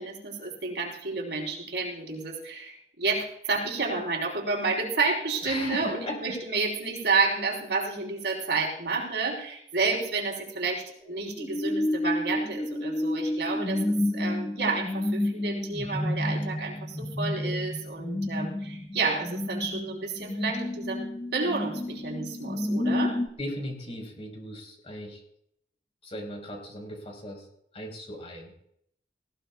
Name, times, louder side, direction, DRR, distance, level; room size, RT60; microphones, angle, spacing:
voice 1, 0.0-13.8 14.1-21.1 21.3-23.2, right 4 dB, 70° right, -1 dB, 4.2 m, -30 dB
voice 2, 5.4-6.2 23.4-25.2 26.0-27.5 27.7-28.5, left 1 dB, 35° left, 1 dB, 4.5 m, -37 dB
sound 1, 11.0-23.3, left 1 dB, 15° left, 0.8 m, -30 dB
19.5 x 18.0 x 2.3 m, 0.71 s
head